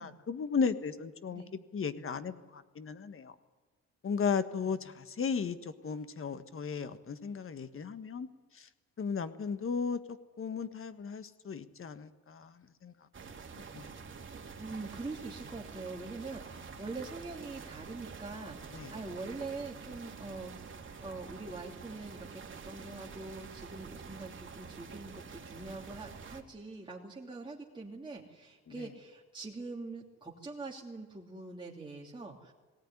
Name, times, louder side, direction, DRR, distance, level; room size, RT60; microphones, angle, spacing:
voice 1, 0.0-1.4 1.7-3.3 4.0-8.3 8.5-8.7 9.0-10.0 10.4-12.9 13.7-13.9 18.7-18.9 28.8-28.9, left 6 dB, 45° left, 1.6 m, -35 dB
sound 1, 13.1-26.4, right 5 dB, 40° right, 2.5 m, -47 dB
voice 2, 14.6-32.5, right 3 dB, 15° right, 2.9 m, -44 dB
19.0 x 17.5 x 9.9 m
cardioid pair, 90°, 30 cm